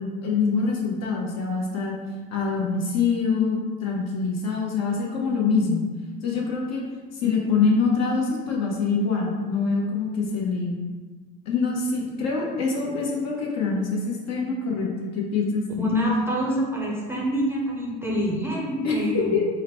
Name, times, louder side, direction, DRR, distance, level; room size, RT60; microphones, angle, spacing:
voice 1, 0.0-2.0 2.3-5.9 6.2-6.8 7.1-10.8 11.5-15.9 18.8-19.5, left 4 dB, 55° left, -1 dB, 0.9 m, -25 dB
voice 2, 15.8-19.4, equal, 10° right, -3 dB, 0.6 m, -26 dB
3.9 x 2.1 x 4.2 m, 1.4 s
cardioid pair, 125°, 31 cm